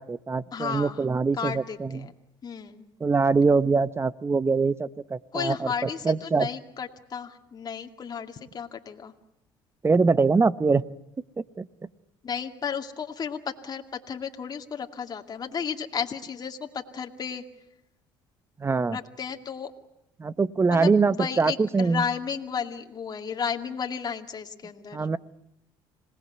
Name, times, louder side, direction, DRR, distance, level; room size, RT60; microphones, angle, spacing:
voice 1, 0.0-2.1 3.0-6.5 9.8-10.8 11.6-11.7 18.6-19.0 20.2-22.0 24.9-25.2, right 4 dB, 25° right, 17 dB, 0.9 m, -23 dB
voice 2, 0.5-1.0 1.4-2.1 2.4-2.9 5.3-9.1 12.2-17.4 18.9-19.7 20.7-25.1, left 7 dB, 35° left, 4 dB, 2.4 m, -33 dB
26.5 x 19.0 x 9.5 m, 0.83 s
supercardioid pair, 80°, 11 cm